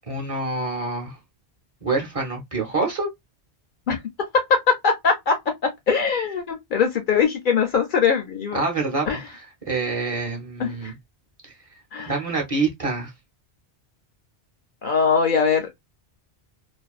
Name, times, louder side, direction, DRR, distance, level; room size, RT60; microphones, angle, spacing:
voice 1, 0.1-1.2 1.8-3.1 8.5-9.1 9.7-10.9 12.0-13.1, right 3 dB, 35° right, 0.7 m, -26 dB
voice 2, 4.5-8.6 9.1-9.3 10.6-10.9 11.9-12.2 14.8-15.7, left 6 dB, 60° left, 0.6 m, -22 dB
2.5 x 2.2 x 2.3 m
omnidirectional pair, 1.1 m